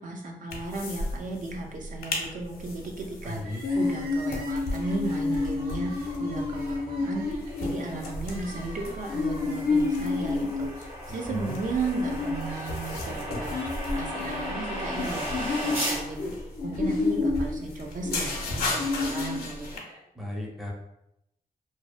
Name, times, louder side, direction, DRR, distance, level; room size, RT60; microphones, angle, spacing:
voice 1, 0.0-16.3 16.6-19.8, right 3 dB, 60° right, 1 dB, 0.4 m, -35 dB
sound 1, 0.5-1.1 1.4-1.5 1.8-2.2 2.7-19.8, left 3 dB, 90° left, 0.5 m, -30 dB
voice 2, 3.2-3.6 11.2-11.6 20.1-20.7, left 1 dB, ahead, -2 dB, 0.5 m, -35 dB
Crying sobbing, 3.4-17.5 17.8-17.9 18.9-20.0, right 1 dB, 75° right, 1.0 m, -48 dB
sound 2, 7.4-16.0, equal, 40° right, 1.0 m, -37 dB
2.6 x 2.0 x 2.4 m, 0.84 s
wide cardioid pair, 95°, 15 cm